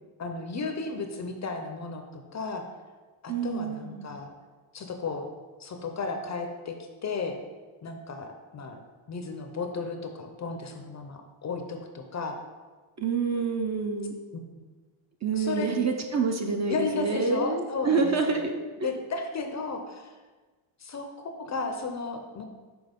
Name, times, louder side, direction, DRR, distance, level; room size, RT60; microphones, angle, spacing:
voice 1, 0.2-2.6 3.2-4.3 4.7-5.3 5.6-6.8 7.0-7.4 7.8-8.8 9.1-12.4 14.3-14.6 15.4-15.7 16.7-18.4 18.8-20.2 20.8-22.4, left 4 dB, 35° left, 5 dB, 0.5 m, -34 dB
voice 2, 3.3-4.1 13.0-14.1 15.2-18.9, right 4 dB, 35° right, 4 dB, 0.5 m, -27 dB
6.2 x 4.6 x 5.1 m, 1.3 s
cardioid pair, 175°, 50 cm